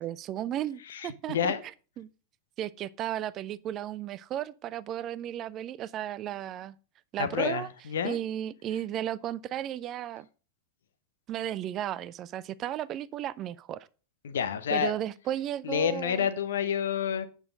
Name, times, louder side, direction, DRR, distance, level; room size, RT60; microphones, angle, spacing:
voice 1, 0.0-1.5 2.0-2.1 2.6-6.7 7.1-7.7 8.0-10.3 11.3-13.9 14.7-16.3, right 11 dB, 35° right, 0.4 m, -34 dB
voice 2, 0.9-1.6 7.2-8.2 14.2-14.9 15.6-17.3, left 8 dB, 60° left, 0.9 m, -29 dB
8.7 x 6.4 x 5.0 m
figure-of-eight pair, 90°, 0 cm